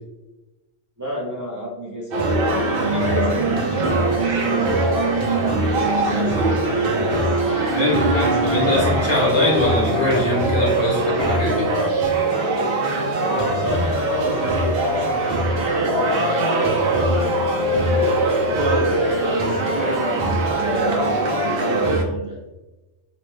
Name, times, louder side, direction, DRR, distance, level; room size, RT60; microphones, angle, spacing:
voice 1, 1.0-5.8 6.1-7.7 8.3-9.3 13.3-22.4, right 1 dB, 30° right, -6 dB, 0.3 m, -31 dB
sound 1, 2.1-22.0, right 2 dB, 60° right, 0.7 m, -21 dB
voice 2, 7.7-11.7, left 1 dB, 75° left, -4 dB, 1.3 m, -22 dB
3.0 x 2.1 x 3.1 m, 1.0 s
omnidirectional pair, 1.2 m